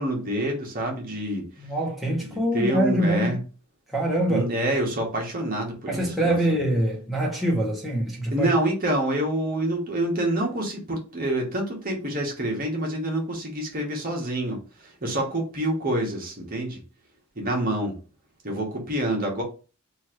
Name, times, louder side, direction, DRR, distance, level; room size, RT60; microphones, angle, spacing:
voice 1, 0.0-1.7 2.3-3.4 4.3-6.4 8.3-16.8 17.4-17.9 18.4-19.4, right 1 dB, 40° right, 1.0 m, -27 dB
voice 2, 1.6-3.4 3.9-4.4 5.9-8.5, right 1 dB, ahead, 1.0 m, -24 dB
3.0 x 2.5 x 4.4 m
head